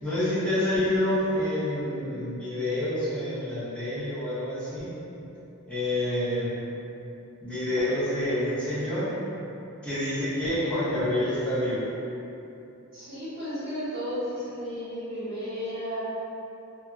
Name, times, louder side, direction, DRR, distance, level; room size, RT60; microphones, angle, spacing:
voice 1, 0.0-4.9 5.7-6.6 7.4-9.1 9.8-11.9, left 1 dB, 5° left, -16 dB, 1.0 m, -27 dB
voice 2, 12.9-16.0, equal, 55° right, -14 dB, 1.0 m, -33 dB
2.6 x 2.3 x 2.4 m, 2.8 s
head